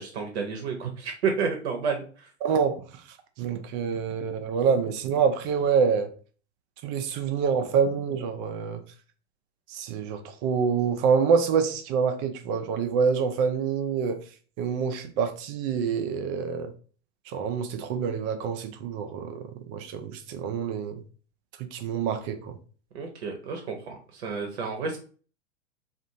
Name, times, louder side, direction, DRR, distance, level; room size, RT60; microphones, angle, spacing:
voice 1, 0.0-2.3 22.9-25.0, right 5 dB, 65° right, 0.7 m, -30 dB
voice 2, 2.4-2.8 3.4-6.1 6.8-8.8 9.7-14.2 14.6-16.7 17.3-21.0 21.6-22.6, right 6 dB, 35° right, 0.4 m, -26 dB
2.5 x 2.4 x 2.7 m
hypercardioid pair, 95°, 35 cm